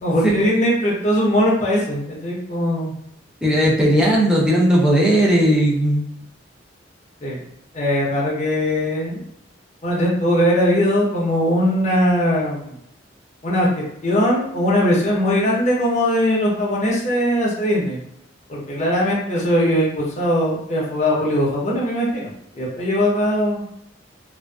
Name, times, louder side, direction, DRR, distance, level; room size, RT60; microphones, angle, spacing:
voice 1, 0.0-2.9 7.2-7.4 7.7-9.2 9.8-12.7 13.4-18.0 18.5-23.6, equal, 35° left, -4 dB, 0.7 m, -20 dB
voice 2, 3.4-6.0, equal, 5° right, -4 dB, 0.5 m, -17 dB
2.5 x 2.2 x 2.2 m, 0.75 s
head